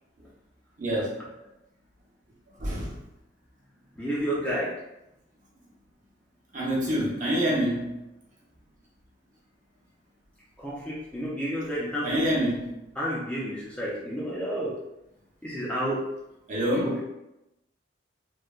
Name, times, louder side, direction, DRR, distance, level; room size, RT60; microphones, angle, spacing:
voice 1, 0.8-1.2 2.6-3.0 6.5-8.0 12.0-12.7 16.5-17.0, equal, 40° right, -4 dB, 0.7 m, -26 dB
voice 2, 4.0-4.7 10.6-12.3 13.0-14.8 15.4-16.0 16.7-17.0, equal, 5° left, -6 dB, 0.4 m, -30 dB
3.0 x 2.1 x 2.3 m, 0.90 s
head